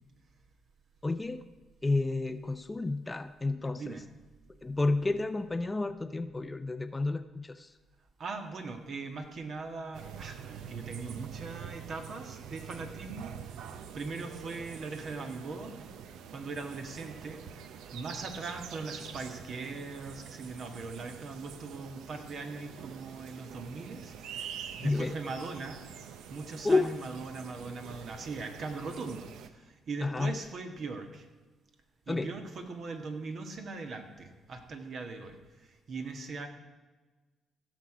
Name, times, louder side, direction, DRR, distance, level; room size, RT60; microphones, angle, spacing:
voice 1, 1.0-1.5 1.8-4.0 4.6-7.7 24.8-25.1 26.6-26.9 30.0-30.3 32.1-32.3, left 3 dB, 20° left, 11 dB, 0.5 m, -30 dB
voice 2, 3.7-4.0 8.2-15.9 16.3-25.8 26.3-31.3 32.1-36.5, right 3 dB, 60° right, 5 dB, 1.5 m, -40 dB
sound 1, 9.9-29.5, right 8 dB, 85° right, 0.7 m, -46 dB
15.5 x 6.4 x 4.9 m, 1.2 s
cardioid pair, 90°, 0 cm